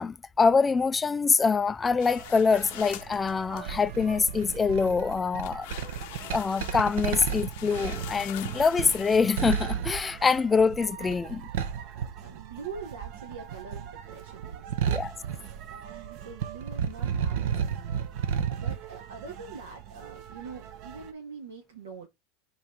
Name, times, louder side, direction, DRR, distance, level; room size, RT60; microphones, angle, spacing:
voice 1, 0.0-5.7 6.3-11.5 14.9-15.1, left 5 dB, 20° left, 0.4 m, -25 dB
sound 1, 2.0-3.7 4.4-4.8 5.4-9.6, left 16 dB, 65° left, 0.8 m, -44 dB
sound 2, 2.1-21.1, right 10 dB, 50° right, 1.1 m, -45 dB
sound 3, 3.7-12.9 13.2-16.1 16.3-18.7, right 8 dB, 75° right, 1.2 m, -32 dB
voice 2, 11.9-15.0 15.7-22.1, right 5 dB, 90° right, 3.0 m, -44 dB
5.6 x 4.4 x 5.1 m
hypercardioid pair, 110°, 0 cm